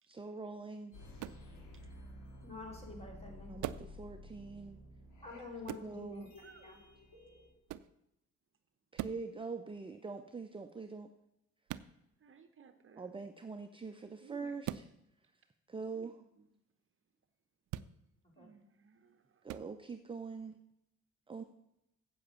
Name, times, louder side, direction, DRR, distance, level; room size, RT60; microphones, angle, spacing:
voice 1, 0.1-1.0 3.5-4.8 5.8-6.3 8.9-11.1 13.0-14.9 15.7-16.2 19.4-20.6 21.3-21.4, right 4 dB, 15° right, 6 dB, 0.7 m, -44 dB
sound 1, 0.9-7.5, left 1 dB, 80° left, 3.0 m, -53 dB
sound 2, 1.2-1.5 3.6-3.9 5.7-5.9 7.7-7.9 8.9-9.3 11.7-11.9 14.6-14.9 17.7-17.9 19.5-19.7, right 13 dB, 80° right, 0.5 m, -41 dB
voice 2, 2.4-3.6 5.2-6.3 6.6-6.8 18.4-18.5, left 3 dB, 20° left, 0 dB, 3.3 m, -47 dB
voice 3, 6.4-6.8 12.2-13.2 14.2-14.6 15.9-16.5 18.4-19.5, right 6 dB, 45° right, 9 dB, 0.9 m, -59 dB
7.9 x 7.7 x 7.0 m, 0.85 s
cardioid pair, 90°, 30 cm